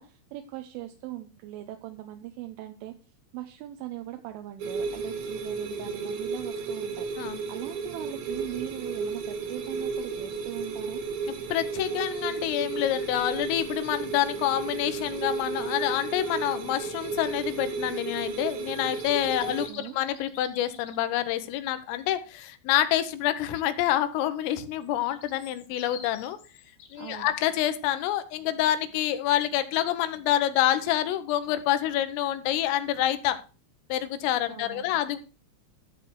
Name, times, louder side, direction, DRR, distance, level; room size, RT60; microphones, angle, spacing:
voice 1, 0.0-2.9 3.3-11.0 19.4-20.0 27.0-27.3 34.5-34.9, right 14 dB, 80° right, 6 dB, 3.2 m, -40 dB
sound 1, 4.6-19.7, right 4 dB, 65° right, 3.9 m, -33 dB
voice 2, 11.5-26.4 26.9-33.4 33.9-35.2, left 12 dB, 90° left, 11 dB, 3.6 m, -27 dB
sound 2, 18.6-21.0 24.6-27.3, left 7 dB, 60° left, 4.0 m, -49 dB
13.0 x 6.7 x 4.5 m, 0.34 s
omnidirectional pair, 5.7 m